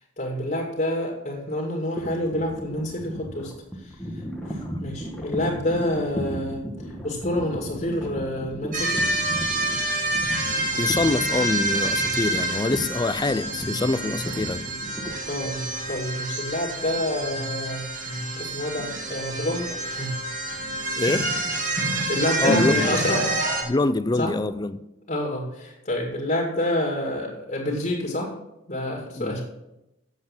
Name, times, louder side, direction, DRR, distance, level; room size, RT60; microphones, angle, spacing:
voice 1, 0.2-6.7 7.0-9.1 15.3-17.9 18.4-20.1 21.8-23.2 24.2-24.3 25.1-28.3 28.7-29.4, left 1 dB, 40° left, 2.1 m, -28 dB
sound 1, 2.0-16.0, equal, 5° left, 1.4 m, -35 dB
sound 2, 8.7-23.6, right 1 dB, 40° right, 1.7 m, -27 dB
voice 2, 10.8-14.6 21.0-21.4 22.4-23.0 23.6-24.8 29.2-29.4, left 2 dB, 20° left, 0.4 m, -25 dB
8.0 x 7.5 x 7.1 m
head